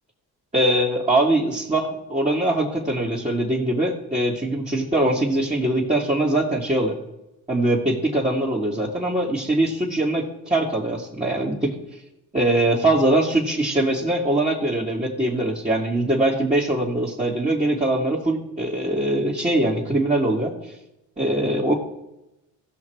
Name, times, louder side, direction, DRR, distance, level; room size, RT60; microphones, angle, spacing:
voice 1, 0.5-7.0 7.5-11.7 12.3-20.7 21.2-21.7, right 1 dB, 15° right, -4 dB, 2.3 m, -22 dB
15.5 x 5.8 x 4.7 m, 0.90 s
supercardioid pair, 60°, 40 cm